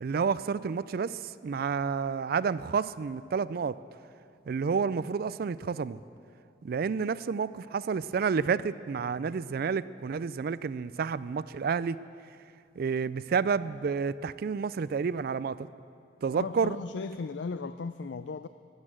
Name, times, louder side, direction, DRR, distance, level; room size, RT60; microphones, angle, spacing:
voice 1, 0.0-3.8 4.5-6.0 6.6-12.0 12.8-15.7 16.2-16.8, right 5 dB, 60° right, 17 dB, 0.4 m, -30 dB
voice 2, 16.3-18.5, left 4 dB, 90° left, 12 dB, 0.4 m, -36 dB
16.0 x 11.5 x 7.5 m, 2.5 s
head